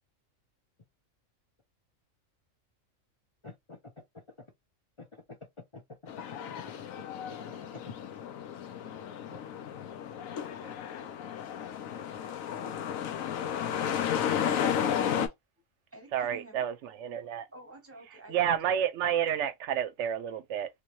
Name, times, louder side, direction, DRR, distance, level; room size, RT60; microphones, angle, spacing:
voice 1, 3.4-4.5 5.0-5.4 5.7-7.9 9.3-9.4, left 4 dB, 40° left, 0.4 m, -49 dB
sound 1, 6.1-15.3, left 9 dB, 90° left, 1.1 m, -33 dB
voice 2, 10.1-10.7 15.9-16.6 17.5-18.7, right 1 dB, 10° right, 1.0 m, -51 dB
voice 3, 16.1-17.4 18.3-20.7, right 9 dB, 70° right, 0.8 m, -30 dB
3.3 x 2.9 x 3.0 m
omnidirectional pair, 1.4 m